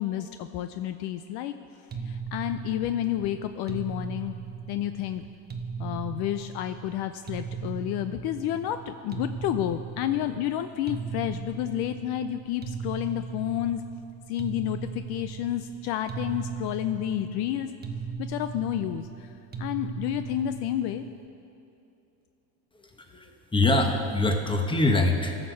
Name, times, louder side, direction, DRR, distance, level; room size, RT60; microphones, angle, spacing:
voice 1, 0.0-1.5 2.0-4.3 4.7-5.3 5.8-13.8 14.3-17.7 18.2-21.0, left 12 dB, 60° left, 9 dB, 0.5 m, -30 dB
sound 1, 1.9-21.2, right 6 dB, 20° right, 0.8 m, -38 dB
voice 2, 23.1-25.4, left 2 dB, 10° left, 4 dB, 1.1 m, -24 dB
16.0 x 6.6 x 4.6 m, 2.8 s
supercardioid pair, 100°, 45 cm